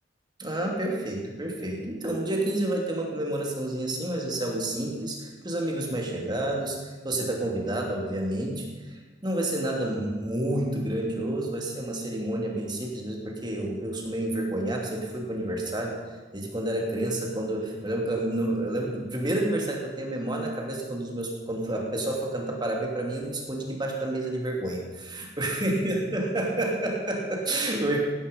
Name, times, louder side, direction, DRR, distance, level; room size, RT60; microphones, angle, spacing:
voice 1, 0.4-16.0 16.3-28.0, right 1 dB, 25° right, 0 dB, 2.8 m, -29 dB
17.0 x 12.5 x 5.4 m, 1.3 s
head